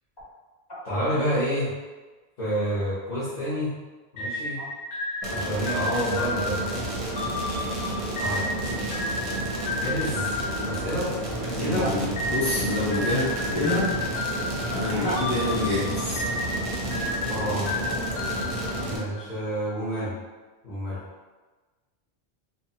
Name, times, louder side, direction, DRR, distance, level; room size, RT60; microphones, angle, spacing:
voice 1, 0.8-1.7 2.4-3.7 4.1-4.6 5.3-6.7 8.2-8.5 9.7-11.1 11.5-11.9 17.3-17.7 18.8-20.1 20.6-21.0, equal, 45° left, -13 dB, 0.8 m, -29 dB
sound 1, 4.2-11.6 12.2-19.4, left 2 dB, 75° left, 1.0 m, -32 dB
sound 2, 5.2-19.0, right 1 dB, 45° right, 0.5 m, -31 dB
voice 2, 11.4-14.0 14.7-16.2, left 1 dB, 25° left, -9 dB, 1.0 m, -27 dB
2.9 x 2.0 x 2.8 m, 1.3 s
omnidirectional pair, 1.1 m